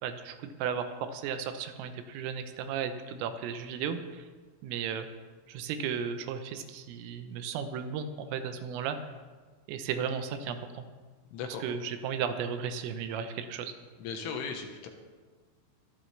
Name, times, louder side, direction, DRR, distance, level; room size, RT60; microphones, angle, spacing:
voice 1, 0.0-4.3 4.6-5.1 5.5-9.1 9.7-10.8 11.6-13.7, right 7 dB, 80° right, 8 dB, 3.4 m, -35 dB
voice 2, 11.3-11.6 14.0-14.9, left 5 dB, 75° left, 4 dB, 3.5 m, -37 dB
23.5 x 11.5 x 3.3 m, 1.4 s
omnidirectional pair, 5.9 m